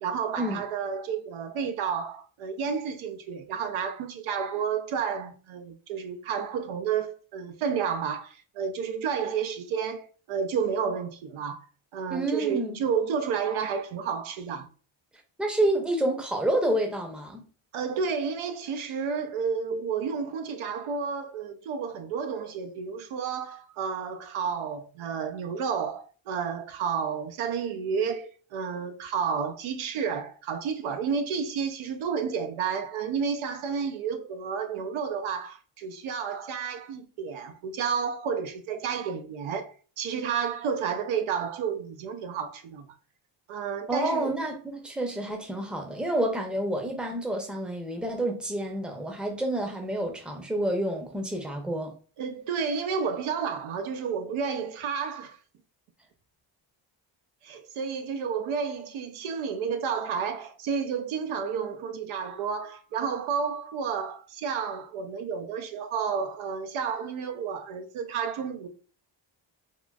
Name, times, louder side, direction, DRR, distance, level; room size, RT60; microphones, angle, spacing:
voice 1, 0.0-14.7 17.7-42.9 43.5-44.4 52.2-55.4 57.4-68.7, right 6 dB, 75° right, 0.6 m, -31 dB
voice 2, 12.1-12.8 15.4-17.5 43.9-51.9, right 1 dB, ahead, 0.6 m, -29 dB
3.6 x 2.4 x 2.3 m
cardioid pair, 100°, 49 cm